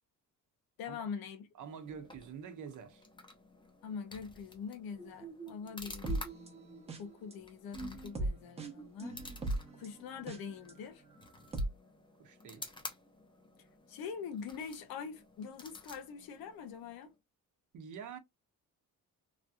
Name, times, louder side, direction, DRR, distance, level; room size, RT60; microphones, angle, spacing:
voice 1, 0.8-1.5 3.8-6.2 7.0-9.2 9.8-11.0 13.9-17.1, left 6 dB, 85° left, 1.0 m, -43 dB
voice 2, 1.5-3.0 12.2-12.7 17.7-18.2, right 7 dB, 60° right, 0.8 m, -46 dB
sound 1, 1.6-17.1, left 2 dB, 15° left, 0.7 m, -53 dB
sound 2, 5.0-7.3 7.7-10.7 11.2-11.6, right 2 dB, 15° right, 0.8 m, -39 dB
3.2 x 2.7 x 2.3 m
cardioid pair, 165°, 35 cm